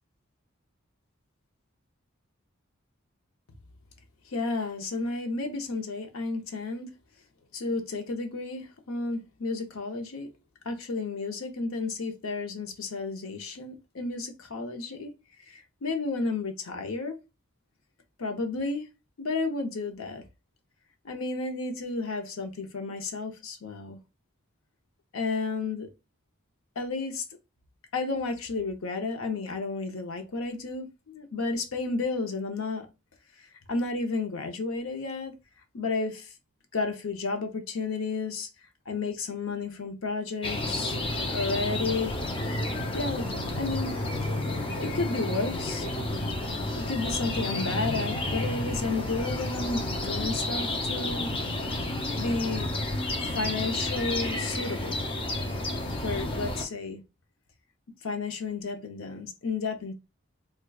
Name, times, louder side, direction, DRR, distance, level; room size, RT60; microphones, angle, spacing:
voice 1, 4.3-6.9 7.5-10.3 10.6-15.1 15.5-17.2 18.2-18.9 19.2-20.2 21.0-24.0 25.1-25.9 26.8-27.2 27.9-32.9 33.4-35.3 35.7-36.3 36.7-38.5 38.9-41.0 41.3-42.2 42.9-43.9 44.8-45.9 46.7-51.3 52.1-52.7 53.2-55.0 56.0-57.0 58.0-59.9, left 3 dB, 90° left, 0.7 m, -32 dB
sound 1, 40.4-56.6, left 1 dB, 25° left, 0.5 m, -31 dB
4.5 x 2.2 x 2.3 m
head